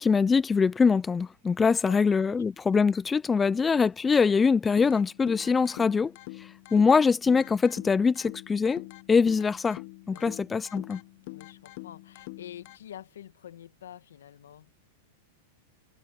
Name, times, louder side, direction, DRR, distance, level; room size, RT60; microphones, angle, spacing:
voice 1, 0.0-6.1 6.4-9.8 10.1-11.0, left 5 dB, 15° left, 0.4 m, -23 dB
voice 2, 1.6-2.4 3.7-3.8 9.3-9.4 10.1-10.3 11.3-14.7, left 10 dB, 85° left, 1.5 m, -47 dB
sound 1, 4.8-12.8, left 22 dB, 55° left, 1.1 m, -45 dB
hypercardioid pair, 130°, 0 cm